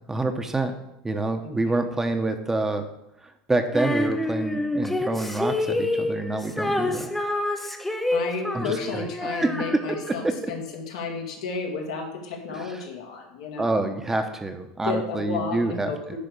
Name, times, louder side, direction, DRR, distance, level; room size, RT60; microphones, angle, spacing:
voice 1, 0.1-0.7 1.0-2.9 3.2-7.1 8.5-9.8 10.1-10.5 12.5-12.8 13.6-16.2, right 2 dB, 15° right, 6 dB, 1.0 m, -27 dB
voice 2, 1.4-1.8 6.7-7.1 7.9-13.8 14.8-16.2, left 4 dB, 80° left, 0 dB, 1.8 m, -33 dB
Female singing, 3.7-10.2, left 2 dB, 5° left, 0.9 m, -28 dB
10.0 x 3.4 x 6.7 m, 0.88 s
hypercardioid pair, 90°, 3 cm